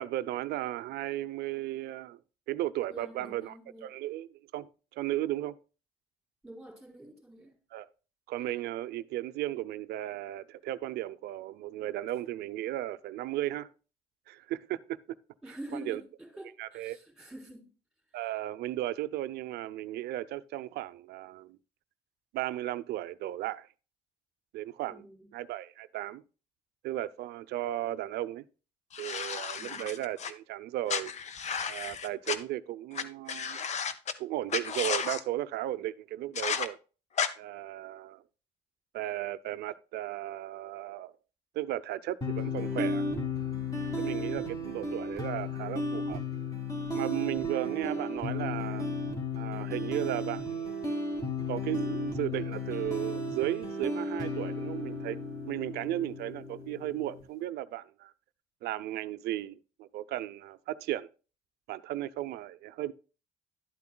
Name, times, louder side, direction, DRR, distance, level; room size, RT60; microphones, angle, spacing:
voice 1, 0.0-2.2 2.5-3.5 3.8-4.3 4.5-5.6 7.7-7.9 8.3-13.7 14.3-15.0 15.7-16.0 16.6-17.3 18.1-21.6 22.3-23.7 24.5-25.0 25.3-26.2 26.8-28.4 29.0-31.1 31.7-33.6 34.2-36.8 37.4-38.2 38.9-41.1 41.5-43.0 44.0-46.2 46.9-48.9 49.4-50.7 51.5-55.2 55.5-58.1 58.6-61.1 61.7-62.9, right 14 dB, 75° right, 0.5 m, -35 dB
voice 2, 2.9-3.9 6.4-7.6 15.4-17.7 18.1-18.3 24.9-25.3 29.6-29.9, right 1 dB, ahead, 3.5 m, -47 dB
sound 1, 28.9-30.3 30.9-32.4 32.9-33.0 33.3-34.1 34.5-35.2 36.4-36.7 37.2-37.3, left 6 dB, 40° left, 0.7 m, -33 dB
sound 2, 42.2-57.2, left 2 dB, 20° left, 2.4 m, -34 dB
11.5 x 8.4 x 2.2 m
cardioid pair, 110°, 17 cm